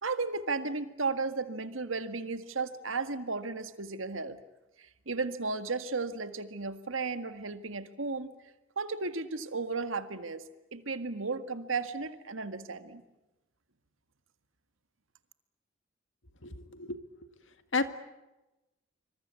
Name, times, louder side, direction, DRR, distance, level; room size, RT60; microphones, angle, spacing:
voice 1, 0.0-4.4 4.8-8.3 8.8-10.4 10.7-13.0, right 4 dB, 80° right, 10 dB, 1.9 m, -34 dB
voice 2, 16.4-17.0 17.7-17.9, left 3 dB, 65° left, 10 dB, 2.0 m, -32 dB
26.0 x 25.0 x 8.4 m, 1.0 s
head